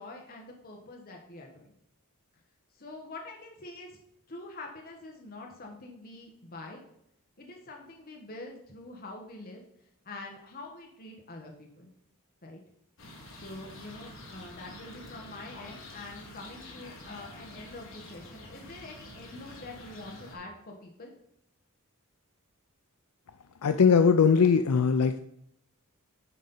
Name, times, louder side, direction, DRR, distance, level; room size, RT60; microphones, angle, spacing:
voice 1, 0.0-1.7 2.8-4.0 4.3-6.8 7.4-9.6 10.0-11.9 12.4-12.6 13.3-21.1, left 2 dB, 40° left, 1 dB, 1.3 m, -45 dB
sound 1, 13.0-20.4, left 1 dB, 65° left, 2.0 m, -47 dB
voice 2, 23.6-25.2, left 6 dB, 85° left, 9 dB, 0.5 m, -21 dB
9.9 x 4.2 x 5.4 m, 0.77 s
head